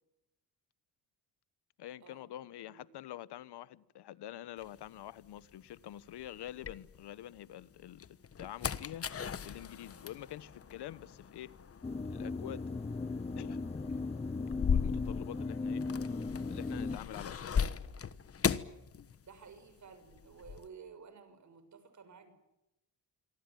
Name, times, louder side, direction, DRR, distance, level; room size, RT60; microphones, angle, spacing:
voice 1, 1.8-9.1 9.4-11.5 12.1-12.7 13.4-13.6 14.7-15.8 16.5-17.6, left 12 dB, 75° left, 1.3 m, -46 dB
sound 1, 4.6-7.4 7.8-19.6 19.9-20.7, left 7 dB, 35° left, 1.3 m, -38 dB
sound 2, 11.8-17.0, left 3 dB, 15° left, 0.9 m, -37 dB
voice 2, 19.2-22.3, right 6 dB, 45° right, 6.7 m, -53 dB
27.0 x 24.0 x 9.3 m
cardioid pair, 135°, 40 cm